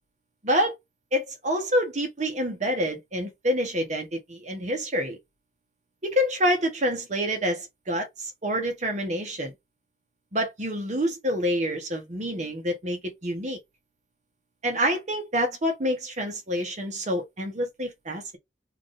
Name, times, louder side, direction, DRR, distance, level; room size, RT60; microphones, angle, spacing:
voice 1, 1.1-5.2 6.0-9.5 10.3-13.6 14.6-18.4, equal, 45° right, 1.1 m, -27 dB
3.5 x 2.5 x 3.6 m
head